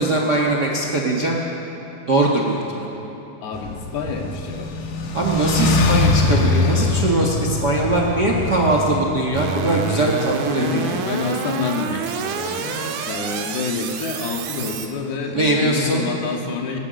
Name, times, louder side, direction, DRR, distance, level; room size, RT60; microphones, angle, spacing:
voice 1, 0.0-1.4 2.1-2.9 5.1-10.8 15.3-16.1, right 2 dB, 45° right, 0 dB, 1.4 m, -21 dB
voice 2, 3.4-4.7 9.9-10.2 10.5-16.8, left 4 dB, 80° left, 1 dB, 3.7 m, -28 dB
sound 1, 3.5-9.0, left 3 dB, 65° left, 2.7 m, -22 dB
sound 2, 9.3-14.9, right 6 dB, 75° right, 3.0 m, -28 dB
21.0 x 19.0 x 6.6 m, 3.0 s
omnidirectional pair, 4.5 m